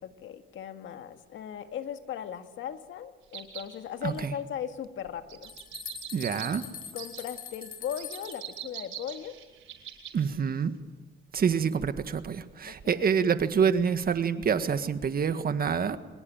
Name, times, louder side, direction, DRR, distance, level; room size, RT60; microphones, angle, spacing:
voice 1, 0.0-5.5 6.9-9.4 12.7-13.1, left 9 dB, 75° left, 8 dB, 1.8 m, -38 dB
sound 1, 3.3-3.7 5.3-6.5 7.0-7.2 8.0-10.2 10.5-10.6, right 11 dB, 80° right, 5.1 m, -42 dB
voice 2, 4.0-4.3 6.1-6.7 10.1-10.7 11.3-16.0, right 6 dB, 50° right, 10 dB, 1.7 m, -27 dB
sound 2, 5.0-8.6, left 7 dB, 45° left, 4.2 m, -43 dB
24.0 x 20.0 x 8.9 m, 1.1 s
cardioid pair, 90°, 20 cm